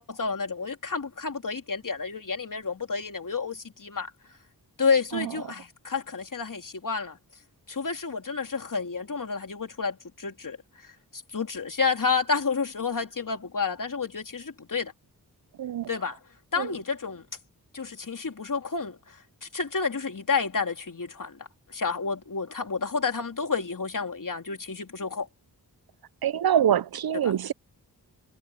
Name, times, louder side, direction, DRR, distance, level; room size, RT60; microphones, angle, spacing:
voice 1, 0.0-4.1 4.8-7.2 7.7-10.6 10.8-14.9 15.9-16.2 16.5-17.3 17.7-25.3 27.2-27.3, left 5 dB, 55° left, 3.3 m, -30 dB
voice 2, 15.6-15.9 16.6-16.7 26.2-27.5, right 9 dB, 70° right, 0.6 m, -25 dB
cardioid pair, 60°, 38 cm